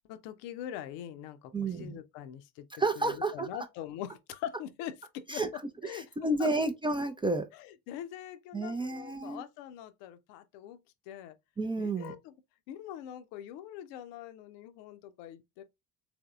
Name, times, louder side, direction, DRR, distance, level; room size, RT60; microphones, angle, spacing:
voice 1, 0.1-2.7 3.0-5.4 5.8-6.1 6.4-6.5 7.5-10.8 11.1-11.4 11.8-12.3 12.7-15.6, left 11 dB, 65° left, 0.7 m, -43 dB
voice 2, 1.5-2.0 2.8-3.5 5.3-5.5 5.9-7.5 8.5-9.4 11.6-12.1, right 2 dB, 10° right, 0.3 m, -31 dB
3.4 x 3.4 x 2.3 m
hypercardioid pair, 55°, 46 cm